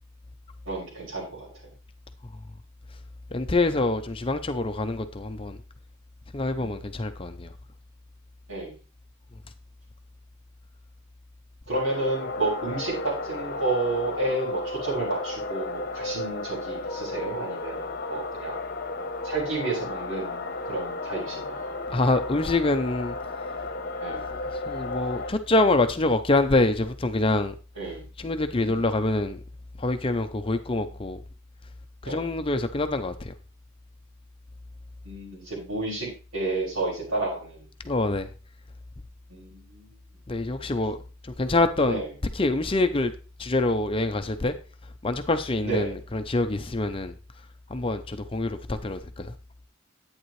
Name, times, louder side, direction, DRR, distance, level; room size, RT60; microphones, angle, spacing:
voice 1, 0.7-1.5 8.5-8.8 11.7-18.6 19.2-21.7 24.0-24.3 27.8-28.0 28.6-28.9 32.0-32.3 35.0-37.7 39.3-39.9 41.9-42.1 45.6-45.9, right 3 dB, 80° right, 6.4 m, -31 dB
voice 2, 3.3-5.6 6.3-7.5 21.9-23.2 24.7-27.5 28.2-29.4 29.8-31.2 32.0-33.3 37.8-38.3 40.3-41.0 41.2-42.0 42.3-43.1 43.4-44.5 45.0-47.1 47.7-49.3, left 2 dB, 25° left, 0.6 m, -25 dB
sound 1, 11.7-25.3, left 2 dB, 45° left, 1.0 m, -34 dB
11.0 x 8.9 x 3.2 m
head